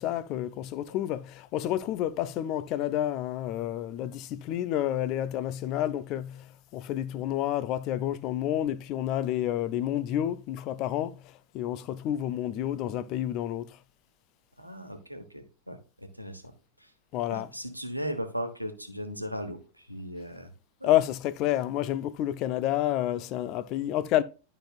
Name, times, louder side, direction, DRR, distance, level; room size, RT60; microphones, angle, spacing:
voice 1, 0.0-6.5 6.7-11.2 11.5-13.8 17.1-17.5 20.8-24.2, left 12 dB, 40° left, 0.5 m, -29 dB
voice 2, 14.6-16.5 16.8-16.9 17.3-20.5 20.8-20.9, equal, 90° right, 1.1 m, -37 dB
11.5 x 5.5 x 2.4 m
figure-of-eight pair, 90°, 0 cm